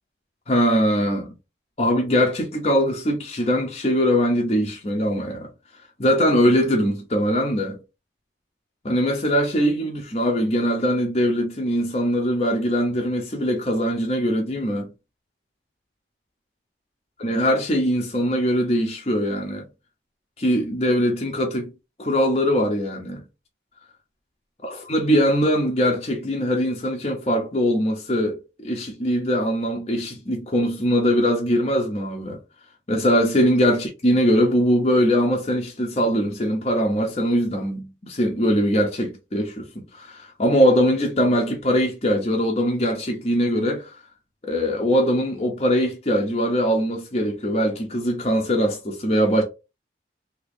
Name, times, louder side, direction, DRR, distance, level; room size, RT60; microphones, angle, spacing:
voice 1, 0.5-1.3 1.8-5.5 6.0-7.8 8.8-14.9 17.2-19.7 20.4-21.7 22.0-23.2 24.6-32.4 32.9-39.7 39.9-43.9 44.4-49.4, equal, 35° left, 0.6 m, -21 dB
2.8 x 2.6 x 3.2 m
head